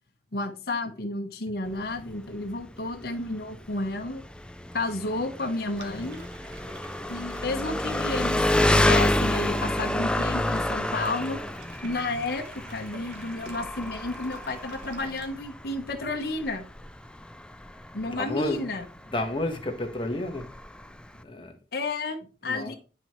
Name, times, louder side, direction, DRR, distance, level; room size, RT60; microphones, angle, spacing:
voice 1, 0.3-4.2 4.7-6.2 7.1-8.4 8.7-11.4 11.8-16.7 17.9-18.9 21.7-22.8, left 2 dB, 60° left, 1.1 m, -31 dB
Engine, 1.7-21.2, left 1 dB, 5° left, 0.4 m, -29 dB
sound 1, 5.7-15.3, right 3 dB, 75° right, 1.6 m, -49 dB
voice 2, 18.0-18.6 19.0-20.5 21.2-21.5 22.4-22.8, left 1 dB, 30° left, 1.4 m, -30 dB
10.5 x 4.5 x 3.1 m
head